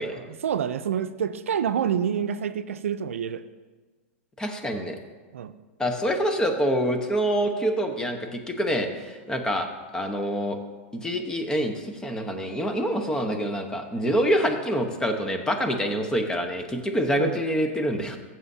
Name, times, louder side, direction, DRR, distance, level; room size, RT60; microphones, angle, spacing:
voice 1, 0.1-3.4 5.3-5.5 17.1-17.4, right 8 dB, 85° right, 12 dB, 0.5 m, -28 dB
voice 2, 4.4-5.0 5.8-9.7 9.9-10.6 10.9-18.2, equal, 10° left, 5 dB, 1.0 m, -26 dB
15.0 x 7.4 x 2.7 m, 1.3 s
hypercardioid pair, 120°, 7 cm